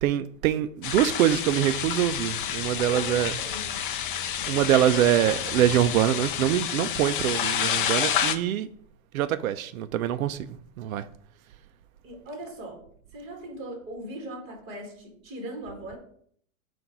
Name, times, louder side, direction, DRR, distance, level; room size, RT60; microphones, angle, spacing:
voice 1, 0.0-3.3 4.5-8.7 9.1-11.1, right 11 dB, 90° right, 0.5 m, -24 dB
sound 1, 0.8-8.4, left 9 dB, 40° left, 0.5 m, -29 dB
voice 2, 2.9-3.8 4.4-4.6 4.9-5.0 12.0-12.8 13.1-16.0, right 1 dB, 30° right, 2.0 m, -39 dB
7.7 x 2.6 x 5.8 m
supercardioid pair, 175°, 41 cm